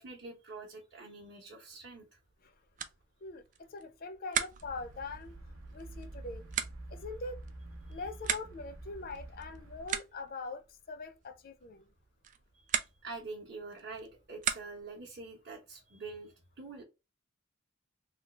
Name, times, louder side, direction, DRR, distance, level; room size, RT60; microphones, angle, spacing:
voice 1, 0.0-2.2 7.9-8.0 12.5-16.8, right 3 dB, 55° right, 0.7 m, -46 dB
sound 1, 2.2-15.0, right 8 dB, 35° right, 0.3 m, -41 dB
voice 2, 3.2-5.3 5.7-6.4 6.9-7.4 7.9-11.9, left 3 dB, 45° left, 0.4 m, -43 dB
sound 2, 4.6-10.0, right 2 dB, 85° right, 0.9 m, -48 dB
3.2 x 2.3 x 3.1 m
head